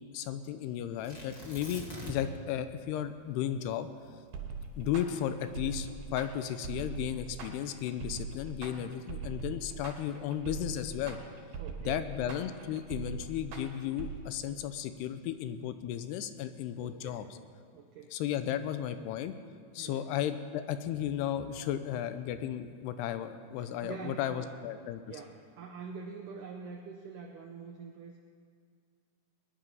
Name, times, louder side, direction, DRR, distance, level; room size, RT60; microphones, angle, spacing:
voice 1, 0.1-3.9 4.8-11.2 11.9-17.3 18.1-19.3 19.7-25.2, left 10 dB, 85° left, 10 dB, 2.7 m, -34 dB
Tearing, 1.0-2.4 2.7-2.8 3.4-5.7 6.4-6.9, right 1 dB, 20° left, 1.3 m, -45 dB
sound 1, 4.3-14.1, right 5 dB, 60° right, 2.8 m, -41 dB
voice 2, 11.6-12.1 16.8-17.3 17.7-18.1 19.8-20.1 23.6-24.6 25.1-28.2, right 5 dB, 90° right, 3 dB, 1.8 m, -45 dB
20.5 x 10.0 x 5.5 m, 2.1 s
omnidirectional pair, 4.8 m